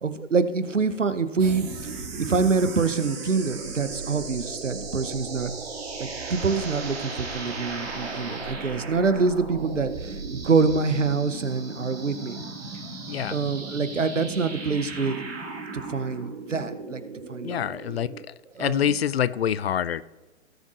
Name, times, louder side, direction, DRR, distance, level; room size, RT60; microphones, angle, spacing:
voice 1, 0.0-1.7 2.2-5.5 6.0-12.4 13.3-15.2 15.7-17.0 17.3-17.6 18.6-18.9, right 4 dB, 85° right, 11 dB, 0.9 m, -25 dB
sound 1, 1.4-18.2, right 3 dB, 55° right, 2.2 m, -36 dB
voice 2, 13.1-13.4 17.4-18.1 18.6-20.0, left 9 dB, 55° left, 18 dB, 0.5 m, -26 dB
18.0 x 7.1 x 2.5 m, 1.1 s
figure-of-eight pair, 115°, 36 cm